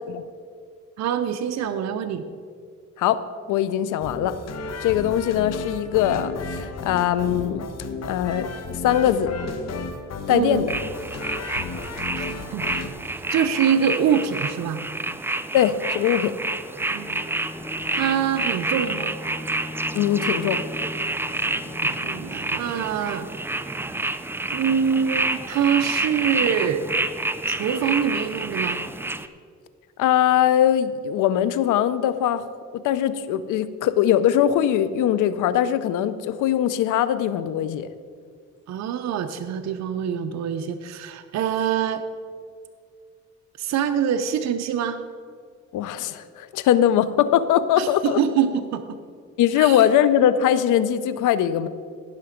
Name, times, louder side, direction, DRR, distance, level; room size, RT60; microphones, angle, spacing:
voice 1, 1.0-2.2 10.3-10.6 12.1-12.6 13.3-14.8 16.9-17.3 17.9-19.1 21.8-23.3 24.5-26.8 27.5-28.8 38.7-42.0 43.6-45.0 47.8-49.0 49.6-49.8, right 8 dB, 65° right, 7 dB, 0.6 m, -25 dB
voice 2, 3.5-4.3 4.8-7.6 8.1-9.3 10.3-10.7 15.5-16.3 19.9-20.6 30.0-32.5 32.7-37.9 45.7-48.2 49.4-51.7, left 10 dB, 85° left, 14 dB, 0.6 m, -21 dB
sound 1, 4.0-12.9, left 4 dB, 60° left, 1.0 m, -33 dB
sound 2, 10.7-29.3, right 2 dB, 10° right, 0.4 m, -28 dB
Bowed string instrument, 16.7-22.7, left 2 dB, 10° left, 0.8 m, -40 dB
16.5 x 5.8 x 5.0 m, 2.1 s
cardioid pair, 90°, 30 cm